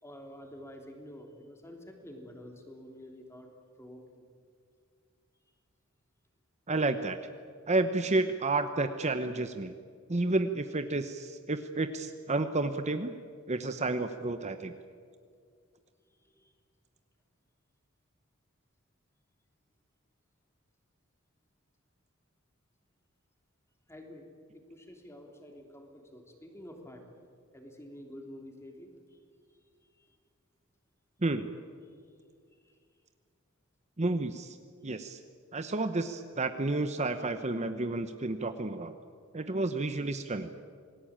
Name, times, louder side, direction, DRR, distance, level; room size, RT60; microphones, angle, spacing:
voice 1, 0.0-3.5 3.8-4.2 16.1-16.5 23.9-24.3 24.5-27.0 27.5-29.2 29.5-29.6 29.9-30.2 32.5-32.8, left 1 dB, 15° left, 3 dB, 3.3 m, -49 dB
voice 2, 6.7-7.2 7.7-9.7 10.1-13.1 13.5-14.7 31.2-31.5 34.0-34.6 34.8-35.2 35.5-38.9 39.3-40.5, right 2 dB, 35° right, 9 dB, 0.9 m, -31 dB
27.5 x 19.5 x 8.8 m, 2.2 s
head